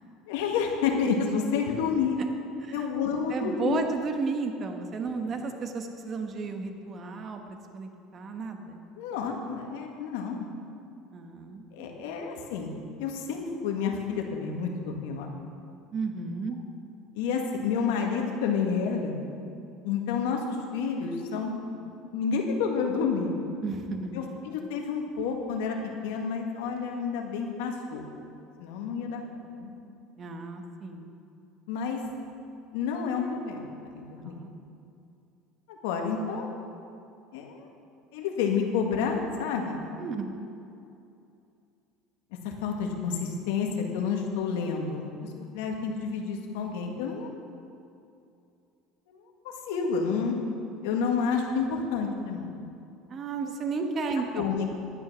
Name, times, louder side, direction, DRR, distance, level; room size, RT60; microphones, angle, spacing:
voice 1, 0.3-2.2 2.7-3.9 5.2-5.3 9.0-10.5 11.8-12.7 13.0-15.3 17.2-19.2 19.8-21.5 21.8-23.4 24.1-25.8 26.0-28.1 28.6-29.2 29.6-29.7 31.7-32.0 32.7-34.4 35.7-36.5 37.3-37.7 38.1-39.8 42.4-45.1 45.5-47.4 49.1-49.2 49.4-50.3 50.8-52.5 54.3-54.7, left 6 dB, 90° left, 2 dB, 1.8 m, -29 dB
voice 2, 3.3-8.8 11.1-12.1 15.9-16.6 23.6-24.1 30.2-31.1 34.3-34.5 40.0-40.5 53.1-54.5, right 4 dB, 35° right, 5 dB, 1.2 m, -33 dB
11.5 x 9.8 x 6.2 m, 2.6 s
cardioid pair, 130°, 0 cm